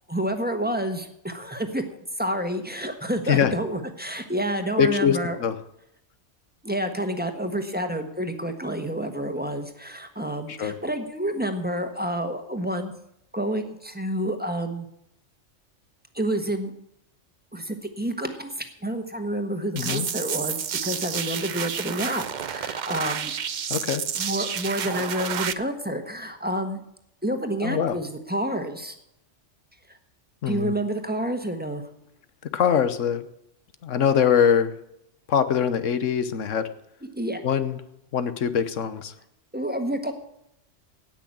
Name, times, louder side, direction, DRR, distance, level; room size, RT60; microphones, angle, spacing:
voice 1, 0.1-1.8 2.2-5.4 6.6-12.9 13.3-14.9 16.1-16.7 17.5-23.3 24.2-26.8 27.2-28.9 29.9-30.0 30.4-31.8 37.1-37.4 39.5-40.1, right 1 dB, 10° right, 6 dB, 1.4 m, -29 dB
voice 2, 4.8-5.6 10.5-10.8 19.7-20.1 23.7-24.0 27.6-28.0 30.4-30.7 32.5-33.2 33.8-34.7 35.3-36.7 37.4-37.8 38.1-39.1, left 8 dB, 85° left, 13 dB, 1.3 m, -23 dB
sound 1, 19.8-25.5, right 8 dB, 50° right, 0.6 m, -30 dB
17.0 x 6.2 x 8.6 m, 0.79 s
omnidirectional pair, 1.2 m